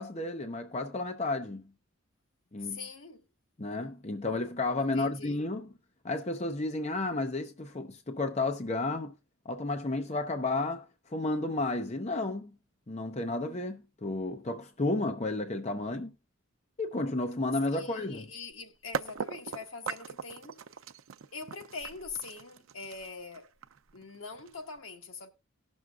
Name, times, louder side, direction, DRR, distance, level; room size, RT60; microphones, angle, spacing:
voice 1, 0.0-1.6 2.5-2.8 3.6-5.7 6.0-9.1 9.4-12.5 12.9-16.1 16.8-18.2, left 2 dB, 30° left, 0.7 m, -32 dB
voice 2, 2.6-3.2 4.8-5.4 17.7-20.7 21.3-23.5 23.9-25.3, left 4 dB, 75° left, 1.4 m, -43 dB
sound 1, 18.5-18.6 18.9-24.8, right 6 dB, 75° right, 0.5 m, -39 dB
18.5 x 6.2 x 2.3 m
head